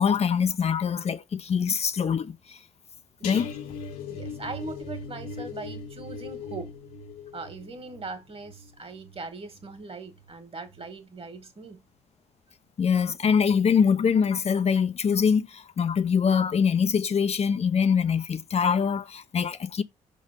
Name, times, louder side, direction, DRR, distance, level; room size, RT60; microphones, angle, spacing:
voice 1, 0.0-2.6 3.2-3.5 12.8-19.8, left 6 dB, 45° left, 0.7 m, -24 dB
sound 1, 3.2-10.3 10.7-11.0 11.3-11.4, left 4 dB, 75° left, 1.4 m, -40 dB
voice 2, 4.1-6.7 7.3-11.8, right 3 dB, 40° right, 2.0 m, -40 dB
5.3 x 3.8 x 5.1 m
hypercardioid pair, 50°, 15 cm